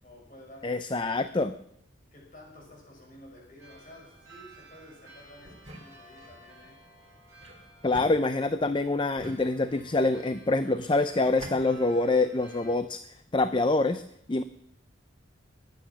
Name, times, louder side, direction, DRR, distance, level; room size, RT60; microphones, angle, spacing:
voice 1, 0.0-1.2 2.1-6.8, left 1 dB, 45° left, -1 dB, 6.2 m, -51 dB
voice 2, 0.6-1.5 7.8-13.0 13.3-14.0 14.3-14.4, left 2 dB, 25° left, 11 dB, 0.5 m, -25 dB
sound 1, 3.6-12.7, right 2 dB, 15° right, 7.5 m, -55 dB
sound 2, 5.4-6.4 7.4-8.7 9.2-10.0 10.8-11.6, right 1 dB, 35° right, 3.2 m, -46 dB
21.5 x 9.5 x 6.1 m, 0.75 s
head